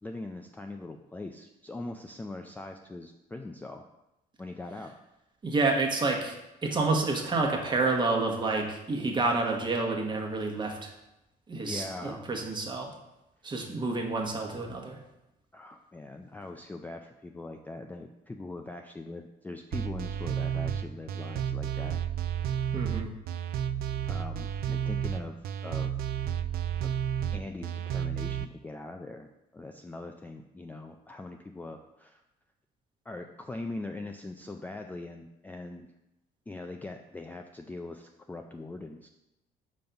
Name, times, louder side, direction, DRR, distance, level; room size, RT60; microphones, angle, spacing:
voice 1, 0.0-3.8 4.4-4.9 11.6-12.3 15.5-22.0 22.4-22.8 24.1-25.9 26.8-26.9 27.3-32.2 33.1-35.9 36.5-39.1, left 2 dB, 10° left, 4 dB, 0.3 m, -41 dB
voice 2, 5.4-10.9 11.5-12.9 13.4-15.0 22.7-23.1, right 3 dB, 25° right, 1 dB, 1.2 m, -29 dB
sound 1, 19.7-28.4, right 9 dB, 65° right, 0.4 m, -31 dB
5.3 x 3.9 x 5.7 m, 0.90 s
cardioid pair, 110°, 17 cm